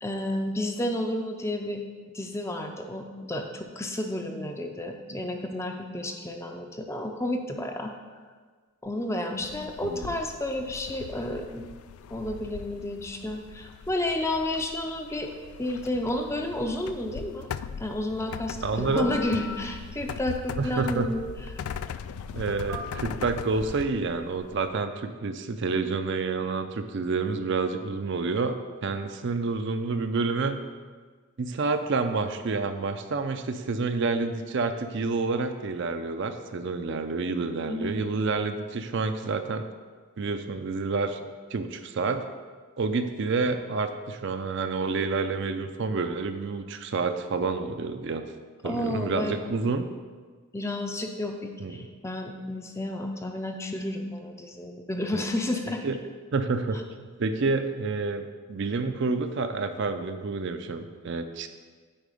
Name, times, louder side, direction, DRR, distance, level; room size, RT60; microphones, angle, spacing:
voice 1, 0.0-1.8 2.1-7.9 8.8-11.7 12.1-15.3 15.6-17.5 17.8-21.2 37.6-37.9 48.6-49.6 50.5-55.9, left 1 dB, 10° left, 4 dB, 0.5 m, -31 dB
sound 1, 9.4-23.9, left 7 dB, 85° left, 0.3 m, -40 dB
voice 2, 9.8-10.2 18.6-19.1 20.6-21.1 22.3-28.6 28.8-30.6 31.4-39.6 40.2-42.3 42.8-48.2 48.6-49.9 51.6-51.9 55.1-55.3 55.8-56.0 56.3-61.5, right 4 dB, 55° right, 8 dB, 0.4 m, -29 dB
Telephone, 18.3-24.7, left 1 dB, 85° right, 1.6 m, -44 dB
8.7 x 4.6 x 4.9 m, 1.5 s
head